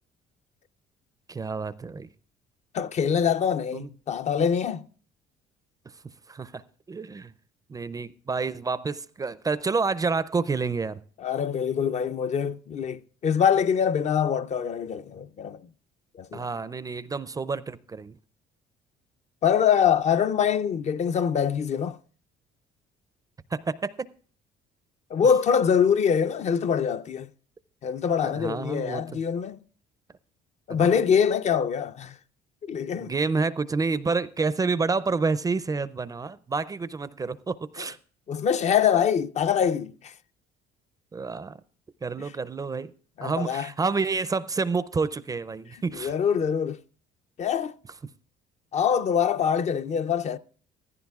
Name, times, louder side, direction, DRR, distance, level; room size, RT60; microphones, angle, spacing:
voice 1, 1.3-2.1 3.7-3.9 6.3-6.6 6.9-7.3 7.7-11.0 16.3-18.2 23.5-24.1 28.2-29.2 30.7-31.0 33.0-38.0 41.1-41.6 42.0-42.9 43.2-46.1, right 4 dB, 20° right, 0.4 m, -29 dB
voice 2, 2.7-4.8 11.2-15.6 16.2-16.5 19.4-22.0 25.1-27.3 27.8-29.6 30.7-32.2 32.7-33.1 38.3-40.1 42.2-42.3 43.2-43.7 45.9-46.8 47.4-47.7 48.7-50.4, left 7 dB, 40° left, 0.5 m, -24 dB
16.0 x 14.5 x 2.4 m
cardioid pair, 110°, 17 cm